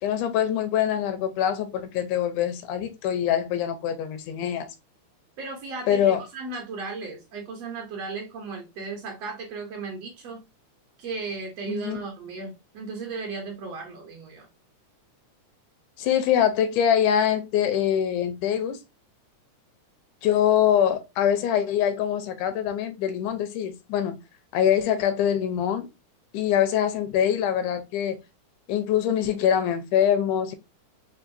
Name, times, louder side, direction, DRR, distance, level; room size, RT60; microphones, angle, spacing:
voice 1, 0.0-4.7 5.9-6.2 11.7-12.0 16.0-18.8 20.2-24.1 24.5-25.9 26.3-28.2 28.7-30.6, left 9 dB, 85° left, 2.0 m, -24 dB
voice 2, 5.4-10.4 11.0-14.5, right 4 dB, 65° right, 1.8 m, -35 dB
5.3 x 2.5 x 2.5 m
omnidirectional pair, 3.5 m